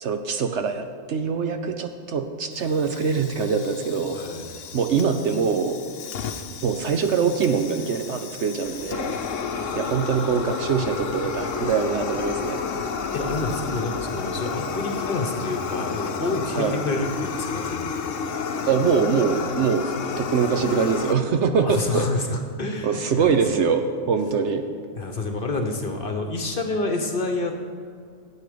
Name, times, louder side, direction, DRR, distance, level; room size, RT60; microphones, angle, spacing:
voice 1, 0.0-4.2 4.7-5.8 6.6-9.2 9.4-12.6 16.6-16.8 18.7-22.1 22.8-24.6, right 6 dB, 60° right, 7 dB, 0.9 m, -23 dB
Fire, 2.5-21.1, left 6 dB, 65° left, 1.1 m, -31 dB
voice 2, 4.1-4.4 13.1-18.1 21.6-23.4 25.0-27.5, left 2 dB, 45° left, 4 dB, 1.1 m, -28 dB
sound 1, 8.6-14.3, equal, 20° right, 1.5 m, -45 dB
13.0 x 8.5 x 5.1 m, 2.3 s
omnidirectional pair, 1.4 m